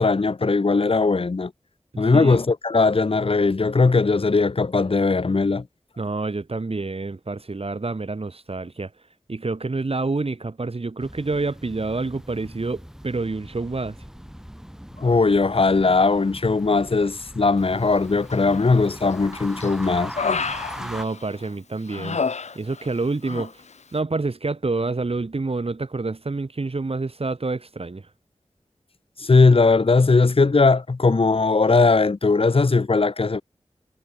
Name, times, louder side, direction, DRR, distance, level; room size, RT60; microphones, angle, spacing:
voice 1, 0.0-1.5 2.0-5.6 15.0-20.1 29.2-33.4, left 3 dB, 55° left, 1.0 m, -19 dB
voice 2, 1.9-2.4 6.0-8.9 9.3-14.0 20.7-22.2 22.5-23.6 23.9-28.1, right 3 dB, 60° right, 2.4 m, -28 dB
sound 1, 11.0-21.1, equal, 5° right, 3.7 m, -40 dB
Human voice, 18.3-18.9 19.3-21.5 21.9-23.0 23.2-23.5, left 5 dB, 90° left, 0.9 m, -29 dB
wide cardioid pair, 50°, 11 cm